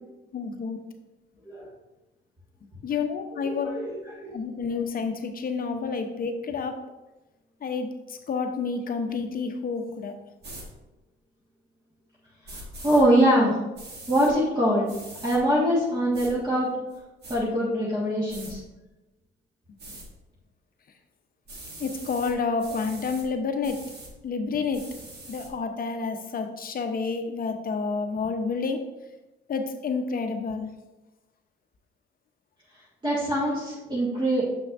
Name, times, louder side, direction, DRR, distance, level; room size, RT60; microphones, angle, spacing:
voice 1, 0.3-0.8 2.8-3.7 4.3-6.7 7.6-7.9 8.3-10.1 21.8-23.8 24.2-24.8 25.3-28.8 29.5-30.7, left 5 dB, 45° left, 6 dB, 0.8 m, -29 dB
voice 2, 3.3-4.3 12.5-13.6 14.1-15.0 15.2-16.7 17.3-18.6 33.0-34.4, equal, 20° right, -6 dB, 1.7 m, -23 dB
sound 1, 10.4-10.6 12.4-13.0 13.7-14.3 14.9-15.4 16.1-16.3 16.9-17.4 18.3-18.5 19.8-20.1 21.5-22.3 22.6-23.2 23.6-24.1 24.7-25.5, right 2 dB, 55° right, 1.7 m, -42 dB
6.9 x 5.7 x 2.6 m, 1.0 s
cardioid pair, 90°, 20 cm